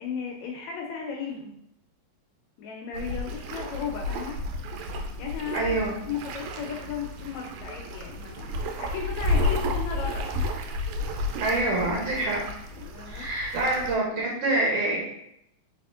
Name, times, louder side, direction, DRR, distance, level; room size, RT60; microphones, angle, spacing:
voice 1, 0.0-1.5 2.6-4.4 5.2-5.8 6.1-10.5 12.7-13.3, left 6 dB, 80° left, 0 dB, 1.8 m, -35 dB
sound 1, 2.9-14.0, left 1 dB, 80° right, 1.9 m, -32 dB
voice 2, 5.5-6.0 11.4-12.4 13.1-15.0, right 2 dB, 65° right, -4 dB, 1.6 m, -26 dB
4.2 x 4.2 x 2.4 m, 0.78 s
omnidirectional pair, 3.4 m